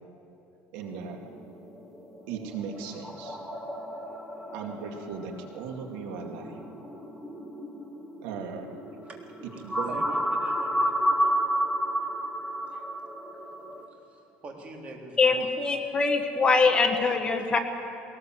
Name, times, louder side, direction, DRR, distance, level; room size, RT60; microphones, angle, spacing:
voice 1, 0.7-1.2 2.3-3.4 4.5-6.6 8.2-8.8 9.6-10.0, right 6 dB, 80° right, 3 dB, 2.4 m, -37 dB
sound 1, 0.9-13.9, equal, 5° right, 1.9 m, -32 dB
voice 2, 9.6-11.2 12.7-12.8 14.1-15.5 15.8-16.0, right 2 dB, 30° right, 0 dB, 3.4 m, -43 dB
voice 3, 15.2-17.6, left 4 dB, 20° left, 6 dB, 1.4 m, -23 dB
21.0 x 19.0 x 7.7 m, 2.9 s
cardioid pair, 145°, 4 cm